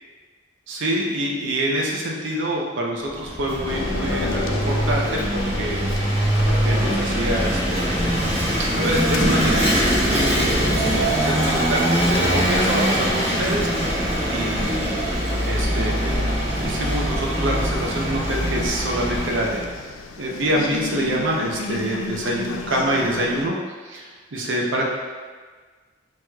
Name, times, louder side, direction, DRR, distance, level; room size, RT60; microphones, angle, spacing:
voice 1, 0.7-6.2 6.6-7.9 8.6-14.0 14.3-15.2 15.4-16.2 16.5-19.6 20.2-23.6 23.8-24.9, right 1 dB, 70° right, -2 dB, 0.6 m, -26 dB
Vehicle / Engine, 3.1-19.7, equal, 35° right, 0.9 m, -22 dB
sound 1, 3.7-23.5, left 4 dB, 80° left, 0.3 m, -35 dB
6.1 x 3.1 x 2.3 m, 1.5 s
head